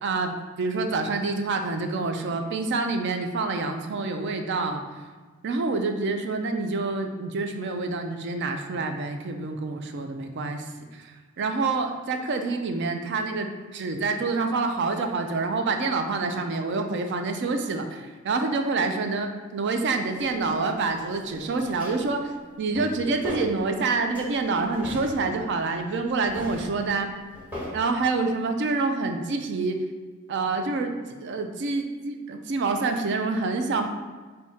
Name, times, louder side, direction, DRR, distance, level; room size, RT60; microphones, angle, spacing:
voice 1, 0.0-4.8 5.4-10.7 10.9-22.3 22.6-27.1 27.7-29.8 30.3-30.9 31.2-33.9, right 3 dB, 55° right, 5 dB, 0.4 m, -27 dB
sound 1, 20.2-20.5 21.0-22.2 22.5-23.9 24.1-25.8 26.2-27.8, left 1 dB, 10° right, 1.0 m, -39 dB
3.5 x 2.7 x 4.1 m, 1.4 s
head